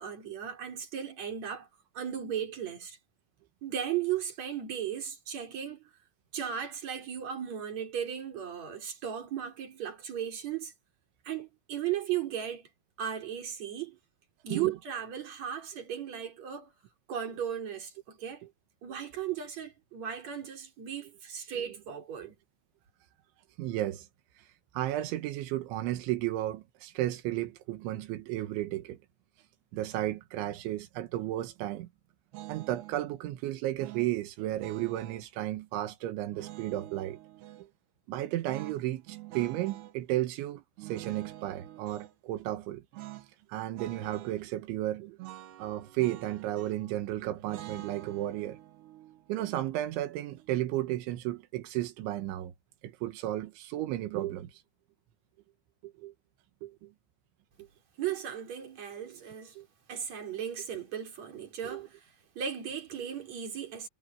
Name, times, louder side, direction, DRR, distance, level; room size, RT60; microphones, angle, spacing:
voice 1, 0.0-1.7 1.9-3.0 3.6-5.8 6.3-10.7 11.2-12.7 13.0-14.0 14.4-16.7 17.1-18.4 18.8-22.3 58.0-59.6 59.9-62.0 62.3-63.9, right 9 dB, 40° right, 5.0 m, -36 dB
voice 2, 23.6-24.1 24.7-29.0 29.7-31.9 32.5-37.2 37.6-37.7 38.1-42.8 43.5-45.2 45.6-48.6 49.3-52.5 52.8-54.6 55.8-56.1 56.6-56.9 59.6-59.7 61.7-61.9, right 14 dB, 90° right, 3.7 m, -33 dB
sound 1, 32.3-33.0 33.8-35.3 36.3-37.7 38.5-40.0 40.8-42.1 42.9-43.3 43.6-44.4 45.2-47.0 47.5-50.5, right 15 dB, 70° right, 3.4 m, -46 dB
omnidirectional pair, 5.2 m